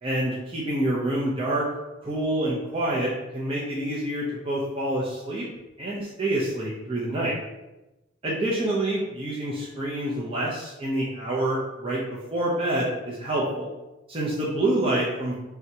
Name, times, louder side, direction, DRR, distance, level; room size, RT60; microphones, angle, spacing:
voice 1, 0.0-1.7 2.0-5.5 5.8-7.3 8.2-13.7 14.1-15.3, right 1 dB, 25° right, -6 dB, 0.7 m, -27 dB
4.5 x 3.5 x 2.8 m, 1.0 s
head